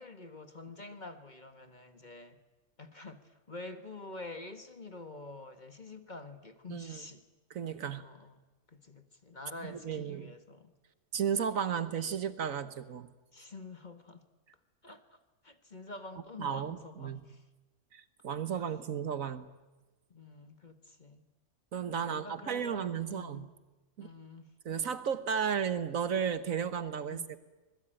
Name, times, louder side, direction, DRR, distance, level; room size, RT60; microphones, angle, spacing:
voice 1, 0.0-2.4 2.8-7.2 7.9-8.4 8.7-10.7 13.3-14.2 14.8-15.2 15.4-17.4 20.1-21.3 21.9-23.5 24.0-24.5 27.1-27.4, left 2 dB, 30° left, 1.6 m, -47 dB
voice 2, 6.7-7.0 7.5-8.0 9.7-10.3 11.1-13.1 16.4-17.2 17.9-19.5 21.7-23.5 24.0-24.1 24.6-27.4, right 7 dB, 65° right, 1.5 m, -34 dB
26.5 x 20.5 x 9.1 m
omnidirectional pair, 1.5 m